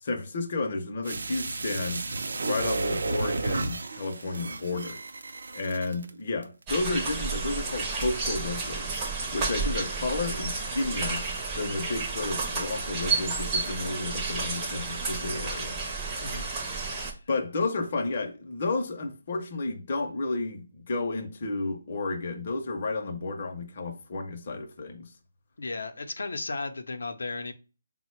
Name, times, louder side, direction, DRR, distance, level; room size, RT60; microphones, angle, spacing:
voice 1, 0.0-2.0 2.4-5.0 5.5-8.9 9.3-11.2 11.6-15.8 17.3-25.1, left 3 dB, 35° left, 0.5 m, -32 dB
sound 1, 1.0-6.1 6.4-6.5, right 3 dB, 65° right, 0.4 m, -32 dB
sound 2, 6.7-17.1, right 4 dB, 15° right, 0.5 m, -31 dB
voice 2, 16.2-16.5 25.6-27.5, left 3 dB, 80° left, 0.5 m, -35 dB
3.9 x 2.1 x 4.3 m
hypercardioid pair, 175°, 0 cm